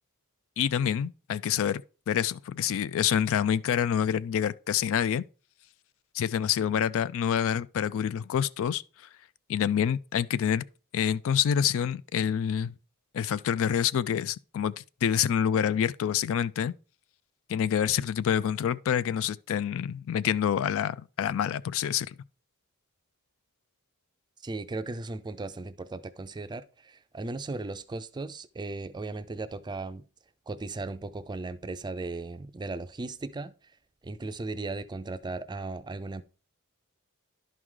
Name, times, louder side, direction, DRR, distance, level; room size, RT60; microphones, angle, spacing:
voice 1, 0.6-5.2 6.1-8.8 9.5-10.6 10.9-12.8 13.1-14.7 15.0-16.7 17.5-22.2, left 8 dB, 65° left, 0.3 m, -27 dB
voice 2, 24.4-30.0 30.5-33.5 34.0-36.2, right 3 dB, 20° right, 0.4 m, -36 dB
11.0 x 4.7 x 3.7 m
head